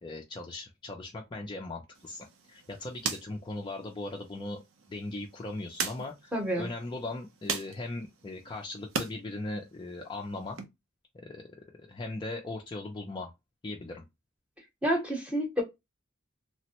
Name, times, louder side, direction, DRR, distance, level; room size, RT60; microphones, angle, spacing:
voice 1, 0.0-4.6 4.9-10.6 11.1-11.4 11.9-13.3 13.6-14.1, left 2 dB, 20° left, 0.3 m, -39 dB
sound 1, 1.9-9.1 9.5-10.6, right 5 dB, 70° right, 0.6 m, -40 dB
voice 2, 6.3-6.7 14.8-15.6, equal, 5° right, 0.7 m, -28 dB
3.3 x 2.1 x 2.8 m
head